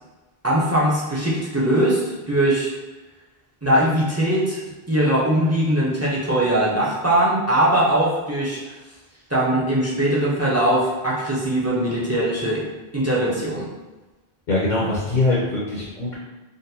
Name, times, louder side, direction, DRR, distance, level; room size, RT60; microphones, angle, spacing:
voice 1, 0.4-2.7 3.6-4.6 4.9-8.6 9.3-12.7 12.9-13.7, right 1 dB, 20° right, -6 dB, 0.5 m, -21 dB
voice 2, 14.5-16.1, left 2 dB, 55° left, -5 dB, 0.8 m, -22 dB
3.7 x 2.1 x 2.7 m, 1.2 s
omnidirectional pair, 1.0 m